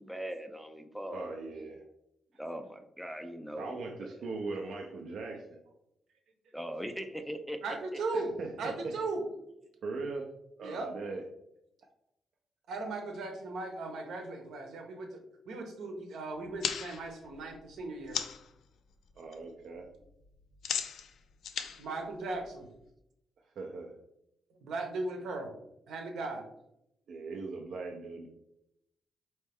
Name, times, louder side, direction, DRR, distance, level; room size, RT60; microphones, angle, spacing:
voice 1, 0.0-1.3 2.4-3.8 6.5-8.0, equal, ahead, 6 dB, 0.3 m, -40 dB
voice 2, 1.1-1.8 3.6-5.6 7.9-9.0 9.8-10.3 10.6-11.3 19.2-19.9 23.6-23.9 27.1-28.3, right 3 dB, 65° right, 1 dB, 0.5 m, -40 dB
voice 3, 7.6-8.3 8.6-9.2 10.6-10.9 12.7-15.2 15.5-18.2 21.8-22.7 24.6-25.5 25.9-26.4, right 3 dB, 85° right, 3 dB, 0.9 m, -37 dB
sound 1, 16.4-18.5 18.9-19.4 19.6-22.9, left 8 dB, 75° left, 0.4 m, -38 dB
4.4 x 3.1 x 3.4 m, 0.81 s
cardioid pair, 145°, 0 cm